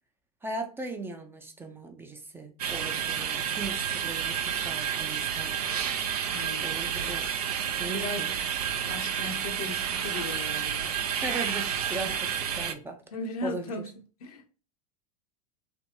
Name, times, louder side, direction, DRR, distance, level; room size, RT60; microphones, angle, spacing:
voice 1, 0.4-5.5 6.6-7.5 7.8-8.4 11.2-13.0 13.4-13.7, right 2 dB, 10° right, 0.4 m, -38 dB
sound 1, 2.6-12.7, right 8 dB, 70° right, 0.5 m, -30 dB
voice 2, 6.3-6.7 7.9-8.3 8.9-10.9 12.0-12.1 13.1-13.9 14.2-14.5, left 2 dB, 65° left, 0.6 m, -37 dB
3.3 x 2.2 x 2.8 m
figure-of-eight pair, 90°, 20 cm